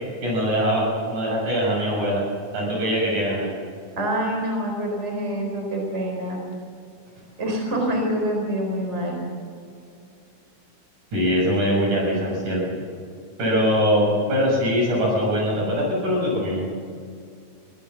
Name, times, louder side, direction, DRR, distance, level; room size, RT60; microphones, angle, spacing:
voice 1, 0.2-2.2 2.5-3.5 11.1-12.6 13.4-16.7, equal, 65° right, -2 dB, 8.3 m, -22 dB
voice 2, 4.0-6.4 7.4-9.2, right 1 dB, 20° right, 1 dB, 4.6 m, -26 dB
23.5 x 16.5 x 7.2 m, 2.3 s
omnidirectional pair, 3.8 m